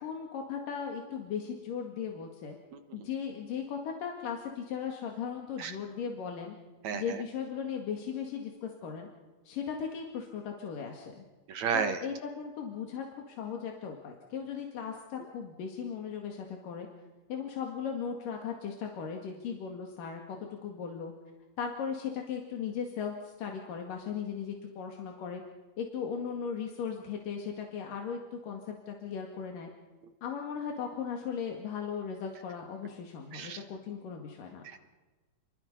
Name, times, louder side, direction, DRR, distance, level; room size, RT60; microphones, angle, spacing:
voice 1, 0.0-2.6 2.9-6.6 6.9-9.1 9.5-11.2 11.7-16.9 17.3-20.4 20.6-21.1 21.6-25.4 25.8-29.7 30.2-34.6, left 7 dB, 90° left, 2 dB, 3.8 m, -37 dB
voice 2, 6.8-7.2 11.5-12.0 33.3-33.6 34.6-34.8, right 6 dB, 65° right, 8 dB, 2.5 m, -32 dB
29.5 x 22.0 x 5.5 m, 1.2 s
omnidirectional pair, 3.7 m